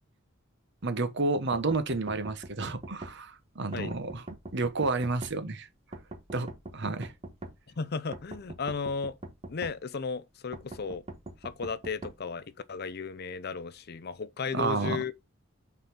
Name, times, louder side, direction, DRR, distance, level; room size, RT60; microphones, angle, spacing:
voice 1, 0.8-4.2 4.5-5.7 6.3-6.5 6.7-7.1 14.5-15.0, right 3 dB, 60° right, 1.2 m, -30 dB
sound 1, 1.5-3.1 3.7-5.3 5.9-7.6 8.1-9.8 10.5-12.2, right 2 dB, 30° right, 1.3 m, -42 dB
voice 2, 7.8-9.2 9.5-11.1 11.4-15.1, left 4 dB, 50° left, 0.6 m, -35 dB
5.7 x 4.3 x 5.6 m
head